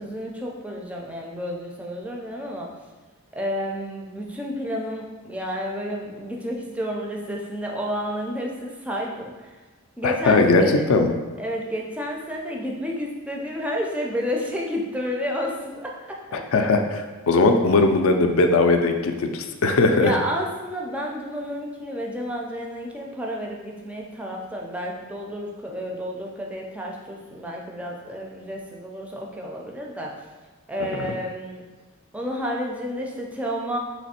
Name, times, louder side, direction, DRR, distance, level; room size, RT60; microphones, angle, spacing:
voice 1, 0.0-2.7 3.3-9.6 10.0-10.9 11.4-16.5 20.0-30.1 30.7-31.6 32.1-33.8, equal, 5° right, -1 dB, 0.4 m, -31 dB
voice 2, 10.0-10.6 10.9-11.1 16.3-20.2 30.9-31.1, left 3 dB, 70° left, 5 dB, 0.4 m, -19 dB
3.3 x 3.0 x 4.2 m, 1.3 s
head